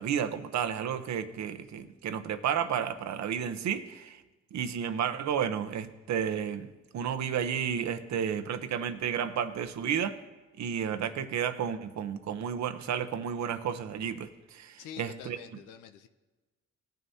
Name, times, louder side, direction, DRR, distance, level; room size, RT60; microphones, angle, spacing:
voice 1, 0.0-4.2 4.5-10.2 10.6-15.4, right 8 dB, 65° right, 9 dB, 0.9 m, -32 dB
voice 2, 14.8-16.1, left 9 dB, 85° left, 8 dB, 0.7 m, -46 dB
18.5 x 9.3 x 2.8 m, 1.2 s
cardioid pair, 90°, 30 cm